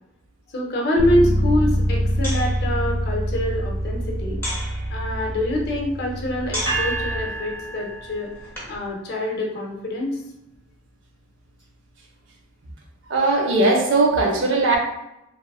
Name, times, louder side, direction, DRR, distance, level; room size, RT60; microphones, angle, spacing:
voice 1, 0.5-4.4 4.9-8.3 8.7-10.2, left 1 dB, 50° left, -1 dB, 0.5 m, -25 dB
Bass guitar, 1.0-7.2, equal, 15° right, 0.4 m, -25 dB
sound 1, 1.3-8.9, equal, 10° left, 0.8 m, -37 dB
sound 2, 6.7-8.8, right 3 dB, 90° right, 1.3 m, -30 dB
voice 2, 13.1-14.8, right 2 dB, 65° right, 1 dB, 0.6 m, -19 dB
3.0 x 2.3 x 2.3 m, 0.87 s
head